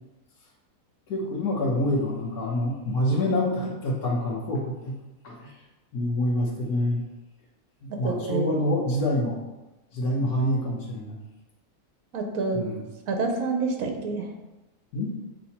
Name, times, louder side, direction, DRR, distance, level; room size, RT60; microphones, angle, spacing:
voice 1, 1.1-5.0 5.2-5.5 5.9-7.0 7.8-9.4 9.9-11.2 12.5-12.8 14.9-15.1, left 1 dB, 85° left, -2 dB, 1.7 m, -26 dB
voice 2, 8.0-8.6 12.1-12.7 13.1-14.3, right 3 dB, 65° right, 4 dB, 1.3 m, -28 dB
7.5 x 3.2 x 4.2 m, 1.0 s
omnidirectional pair, 1.6 m